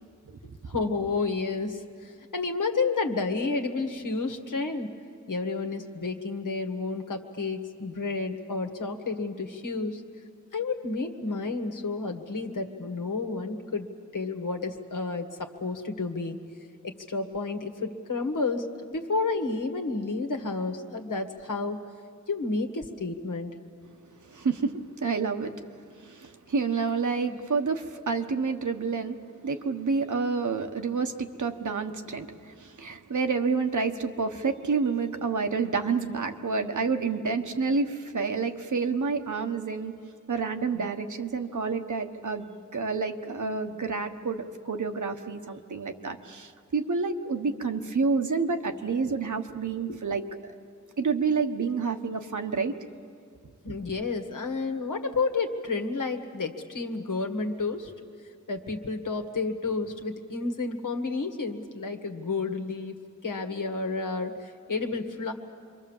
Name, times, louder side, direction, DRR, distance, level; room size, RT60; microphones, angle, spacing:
voice 1, 0.7-4.9 5.3-10.0 10.5-16.4 16.8-21.8 22.3-23.5 27.3-27.4 40.7-40.9 49.0-49.1 49.9-50.0 53.6-57.9 58.5-65.3, left 3 dB, 80° left, 4 dB, 1.8 m, -31 dB
voice 2, 24.3-25.5 26.0-29.2 29.4-39.9 40.3-50.2 51.0-52.7, right 4 dB, 70° right, 5 dB, 1.3 m, -29 dB
27.5 x 23.0 x 7.3 m, 2.2 s
wide cardioid pair, 80°, 31 cm